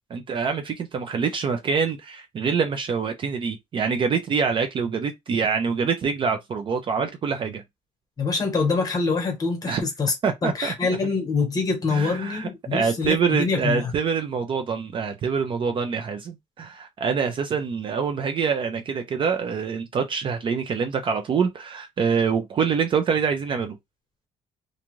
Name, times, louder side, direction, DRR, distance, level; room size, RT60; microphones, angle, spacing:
voice 1, 0.1-7.6 9.7-9.8 10.2-10.7 11.9-23.8, right 6 dB, 35° right, 0.4 m, -25 dB
voice 2, 8.2-10.1 10.4-13.9, left 4 dB, 25° left, 1.0 m, -25 dB
2.6 x 2.3 x 3.0 m
cardioid pair, 165°, 15 cm